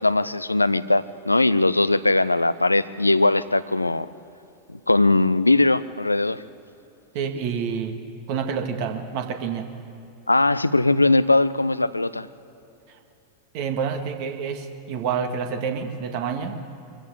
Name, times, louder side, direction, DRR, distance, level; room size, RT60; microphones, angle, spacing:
voice 1, 0.0-4.1 4.7-6.4 10.3-12.3, left 2 dB, 85° left, 16 dB, 0.5 m, -20 dB
voice 2, 7.1-8.0 8.3-9.7 12.9-13.0 13.5-16.6, right 6 dB, 45° right, 5 dB, 2.0 m, -28 dB
24.0 x 15.0 x 8.3 m, 2.8 s
figure-of-eight pair, 90°, 0 cm